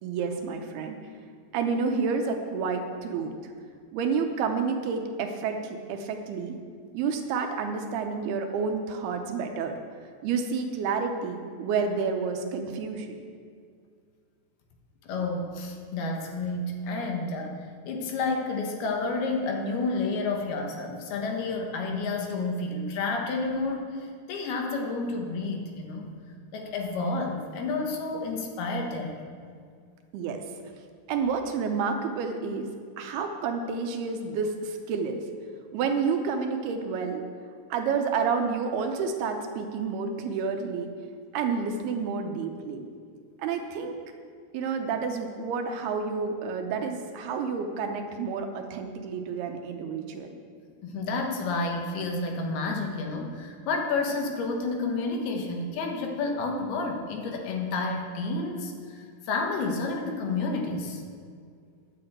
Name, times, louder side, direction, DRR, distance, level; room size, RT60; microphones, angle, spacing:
voice 1, 0.0-1.0 1.5-3.3 3.9-6.6 6.9-9.8 10.2-13.2 30.1-30.4 31.1-32.7 33.0-35.2 35.7-37.3 37.7-40.9 41.3-42.9 43.4-43.9 44.5-50.4, right 5 dB, 75° right, 4 dB, 2.7 m, -29 dB
voice 2, 15.0-26.1 26.5-29.2 50.8-61.0, left 3 dB, 70° left, 2 dB, 3.1 m, -30 dB
11.0 x 7.8 x 7.9 m, 2.2 s
omnidirectional pair, 4.8 m